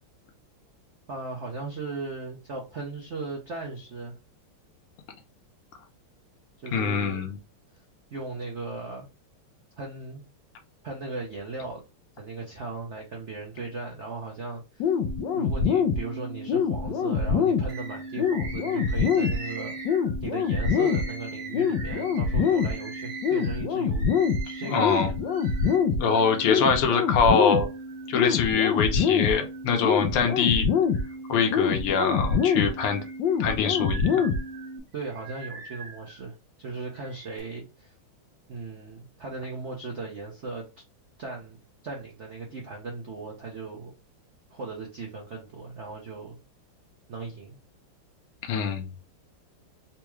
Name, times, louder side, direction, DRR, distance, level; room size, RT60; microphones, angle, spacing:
voice 1, 1.1-4.2 6.6-7.3 8.1-9.1 9.8-10.2 10.8-11.8 12.2-14.9 15.3-19.8 20.2-25.2 34.9-37.9 38.5-40.7 41.2-41.6 41.8-43.9 44.5-46.4 47.1-47.6, right 3 dB, 80° right, -1 dB, 0.6 m, -37 dB
voice 2, 6.7-7.4 24.6-25.1 26.0-27.7 28.1-30.7 31.3-33.0 33.4-34.3 48.5-48.9, left 6 dB, 90° left, 4 dB, 1.7 m, -24 dB
sound 1, 14.8-34.8, left 6 dB, 75° left, 1.1 m, -26 dB
Bird, 17.7-26.6 27.1-28.1 28.7-29.7 30.1-31.5 32.0-36.2 36.9-37.4, right 4 dB, 50° right, 1.0 m, -43 dB
4.2 x 2.3 x 3.0 m, 0.29 s
omnidirectional pair, 2.4 m